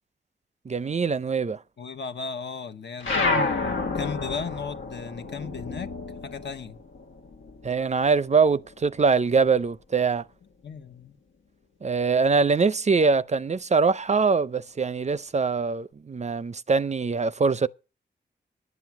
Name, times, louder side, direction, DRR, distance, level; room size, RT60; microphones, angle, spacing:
voice 1, 0.7-1.6 7.6-10.2 11.8-17.7, right 5 dB, 35° right, 0.5 m, -23 dB
voice 2, 1.8-3.5 3.9-5.9 6.2-6.8 10.6-11.2, left 5 dB, 65° left, 1.1 m, -35 dB
sound 1, 3.0-7.9 8.2-9.6, left 3 dB, 85° left, 1.3 m, -30 dB
11.0 x 7.8 x 6.0 m
cardioid pair, 60°, 19 cm